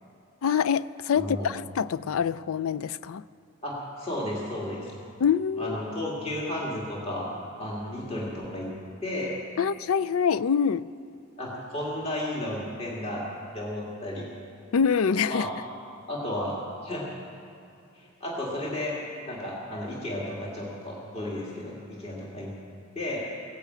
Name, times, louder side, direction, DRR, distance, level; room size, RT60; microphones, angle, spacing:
voice 1, 0.4-3.2 5.2-5.8 9.6-10.8 14.7-15.5, left 7 dB, 70° left, 17 dB, 0.4 m, -25 dB
voice 2, 1.1-1.5 3.6-4.9 5.6-7.3 7.6-8.7 9.0-9.4 11.4-13.2 13.5-14.3 15.3-15.5 16.1-17.1 17.9-19.0 19.3-22.5 23.0-23.3, left 1 dB, 30° left, -4 dB, 2.2 m, -33 dB
17.0 x 10.5 x 8.0 m, 2.6 s
head